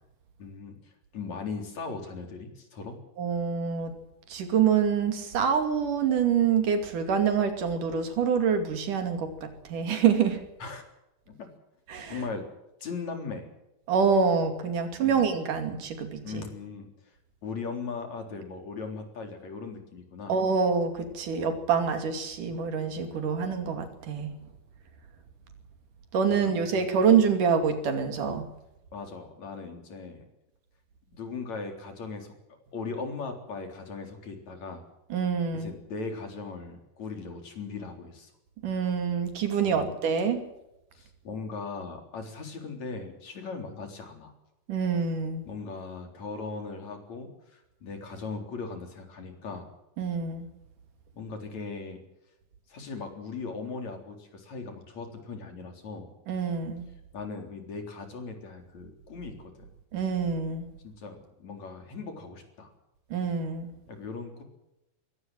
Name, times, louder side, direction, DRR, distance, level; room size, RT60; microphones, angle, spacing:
voice 1, 0.4-3.0 10.6-10.8 11.3-11.5 12.1-12.4 12.8-13.5 15.0-15.3 16.2-16.9 17.4-20.3 26.3-26.6 28.9-30.2 31.1-32.3 32.7-34.8 35.5-38.3 39.6-39.9 40.9-44.3 45.4-49.7 51.1-52.0 52.7-56.1 57.1-59.7 60.8-62.7 63.9-64.4, left 4 dB, 60° left, 5 dB, 5.0 m, -38 dB
voice 2, 3.2-3.9 4.3-10.4 11.9-12.2 13.9-16.5 20.3-24.3 26.1-28.4 35.1-35.7 38.6-40.4 44.7-45.4 50.0-50.5 56.3-56.9 59.9-60.7 63.1-63.7, right 6 dB, 75° right, 7 dB, 4.1 m, -26 dB
22.5 x 17.5 x 7.7 m, 0.91 s
omnidirectional pair, 3.7 m